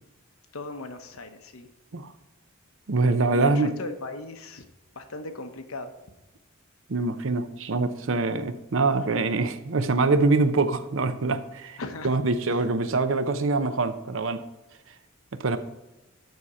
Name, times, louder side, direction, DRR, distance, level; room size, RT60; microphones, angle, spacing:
voice 1, 0.5-1.7 3.3-4.6 5.0-5.9 11.8-12.1 12.5-12.7, left 3 dB, 85° left, 6 dB, 1.0 m, -37 dB
voice 2, 2.9-3.7 6.9-11.8 12.0-14.4 15.3-15.6, right 3 dB, 65° right, 11 dB, 0.7 m, -24 dB
12.5 x 4.2 x 5.0 m, 1.0 s
head